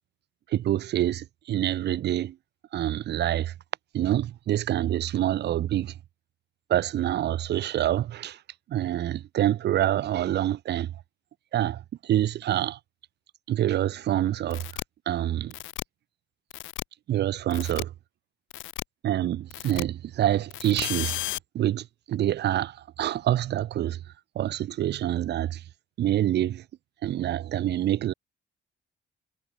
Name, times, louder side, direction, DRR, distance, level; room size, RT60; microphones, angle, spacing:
voice 1, 0.5-2.4 2.7-3.5 3.9-6.0 6.7-8.4 8.7-11.0 11.5-12.8 13.5-14.6 15.1-15.5 17.1-17.9 19.0-21.2 21.5-24.0 24.4-25.6 26.0-26.6 27.0-28.1, right 12 dB, 60° right, 0.5 m, -26 dB
sound 1, 14.5-14.8 15.5-15.8 16.5-16.8 17.5-17.8 18.5-18.8 19.5-19.8 20.5-21.4, left 17 dB, 75° left, 0.4 m, -33 dB
cardioid pair, 90°, 20 cm